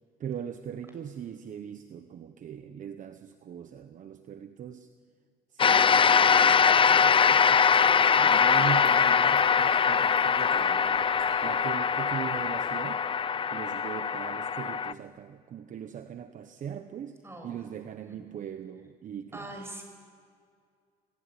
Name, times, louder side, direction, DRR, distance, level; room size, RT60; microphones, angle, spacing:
voice 1, 0.2-4.9 5.5-13.1 13.5-19.6, right 8 dB, 50° right, 8 dB, 1.1 m, -40 dB
sound 1, 5.6-14.9, left 6 dB, 30° left, 0.6 m, -22 dB
sound 2, 6.7-12.7, left 4 dB, 60° left, 6.7 m, -57 dB
voice 2, 17.2-17.7 18.0-18.2 19.3-19.8, right 1 dB, 15° right, 3 dB, 7.6 m, -42 dB
28.0 x 19.5 x 10.0 m, 2.2 s
cardioid pair, 110°, 17 cm